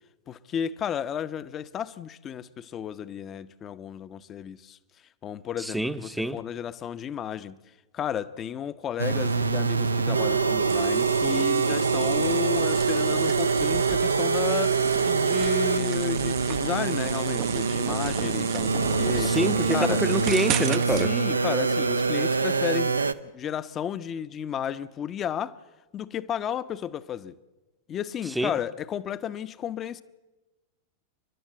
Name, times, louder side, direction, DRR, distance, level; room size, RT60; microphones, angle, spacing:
voice 1, 0.3-4.8 5.2-7.6 7.9-19.4 19.7-20.1 20.9-25.6 25.9-27.4 27.9-30.0, left 9 dB, 30° left, 0.8 m, -33 dB
voice 2, 5.6-6.4 19.2-21.1 28.4-28.6, right 1 dB, 5° right, 0.8 m, -27 dB
sound 1, 9.0-23.1, right 4 dB, 80° right, 0.7 m, -25 dB
sound 2, 10.7-21.1, right 14 dB, 40° right, 0.7 m, -35 dB
29.5 x 12.0 x 8.0 m
figure-of-eight pair, 90°, 0 cm